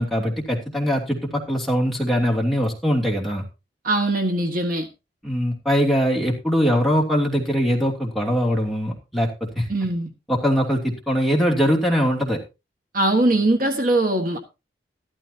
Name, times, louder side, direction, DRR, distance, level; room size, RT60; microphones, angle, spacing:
voice 1, 0.0-3.4 5.2-9.7 10.3-12.4, equal, ahead, 2.8 m, -22 dB
voice 2, 3.8-4.9 9.7-10.1 12.9-14.4, right 2 dB, 45° right, 1.5 m, -21 dB
14.0 x 13.0 x 2.8 m
head